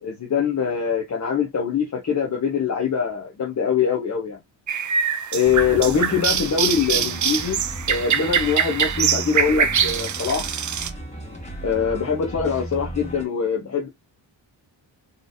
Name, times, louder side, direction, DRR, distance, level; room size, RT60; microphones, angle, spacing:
voice 1, 0.0-4.4 5.3-7.6 7.9-10.5 11.6-13.9, left 6 dB, 35° left, 1.0 m, -23 dB
sound 1, 4.7-10.9, right 7 dB, 40° right, 0.6 m, -23 dB
sound 2, 5.4-13.3, right 1 dB, 15° left, 1.5 m, -35 dB
4.2 x 3.4 x 2.6 m
wide cardioid pair, 125°, 46 cm